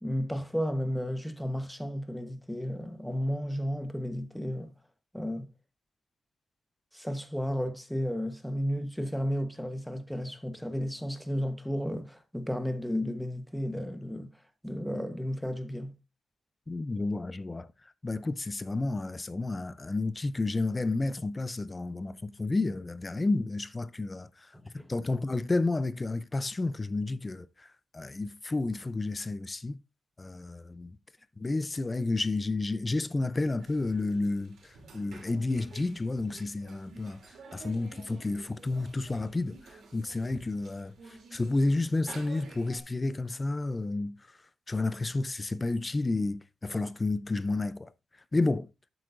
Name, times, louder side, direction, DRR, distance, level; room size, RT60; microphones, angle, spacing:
voice 1, 0.0-4.7 5.1-5.5 6.9-14.3 14.6-15.9 24.6-24.9, equal, ahead, 1.1 m, -33 dB
voice 2, 16.7-29.8 30.2-31.0 31.4-44.4 44.7-47.9 48.3-48.7, left 2 dB, 25° left, 0.5 m, -31 dB
sound 1, 33.6-42.8, right 3 dB, 75° right, 2.9 m, -51 dB
11.0 x 8.0 x 2.5 m
wide cardioid pair, 115°, 0 cm